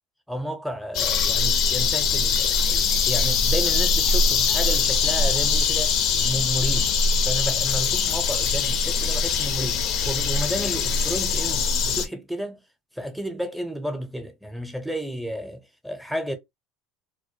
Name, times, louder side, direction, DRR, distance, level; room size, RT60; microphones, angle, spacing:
voice 1, 0.3-7.0 7.2-12.6 12.9-16.4, equal, ahead, 0.6 m, -32 dB
sound 1, 0.9-12.1, left 5 dB, 55° left, 0.4 m, -22 dB
2.2 x 2.1 x 2.7 m
hypercardioid pair, 90°, 0 cm